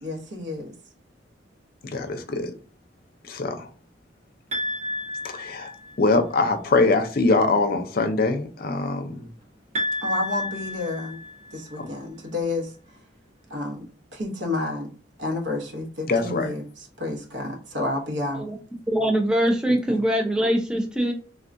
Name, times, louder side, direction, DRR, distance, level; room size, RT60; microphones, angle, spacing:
voice 1, 0.0-0.7 10.0-11.2 11.5-12.7 13.5-14.9 15.2-18.5 19.9-20.0, left 2 dB, 70° right, 1.0 m, -30 dB
voice 2, 1.8-2.5 3.2-3.7 5.3-5.7 6.0-9.3 11.8-11.9 16.1-16.5, left 3 dB, 50° left, 0.5 m, -23 dB
sound 1, 4.5-6.2 9.8-11.8, left 1 dB, 35° right, 0.8 m, -31 dB
voice 3, 18.9-21.1, equal, 5° right, 0.4 m, -22 dB
3.5 x 2.3 x 2.5 m
head